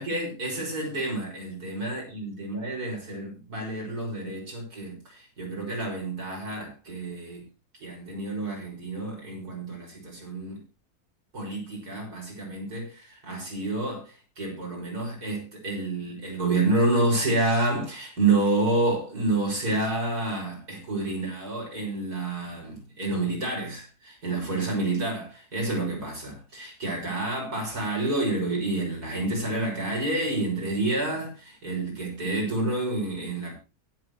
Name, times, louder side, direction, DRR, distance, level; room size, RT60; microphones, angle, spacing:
voice 1, 0.0-7.4 7.8-10.6 11.3-33.5, right 2 dB, 85° right, -1 dB, 6.6 m, -29 dB
23.0 x 7.8 x 3.1 m, 0.29 s
omnidirectional pair, 1.6 m